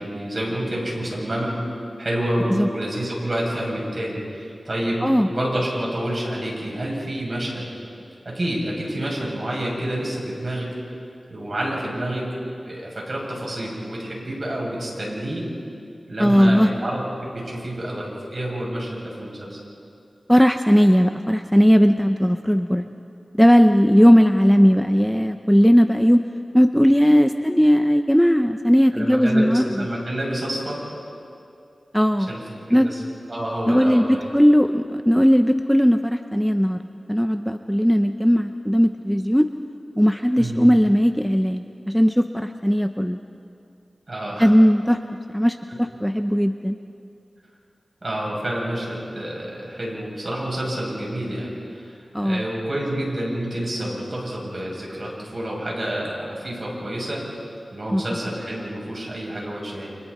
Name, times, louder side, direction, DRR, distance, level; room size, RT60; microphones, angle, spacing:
voice 1, 0.0-1.5 2.0-7.7 8.3-10.7 11.3-15.4 16.1-17.0 17.3-19.6 28.9-30.8 32.3-32.4 32.7-33.0 33.3-34.3 40.4-40.7 44.1-44.5 48.0-57.3 57.7-60.0, right 1 dB, 45° right, -3 dB, 7.2 m, -28 dB
voice 2, 16.2-16.7 20.3-22.9 23.3-26.2 26.5-29.8 31.9-32.3 32.7-33.0 33.7-36.8 37.1-39.5 40.0-43.2 44.4-45.0 45.3-46.8 52.1-52.4 57.9-58.0, equal, ahead, 7 dB, 0.6 m, -17 dB
29.5 x 26.5 x 4.3 m, 2.5 s
wide cardioid pair, 80°, 0 cm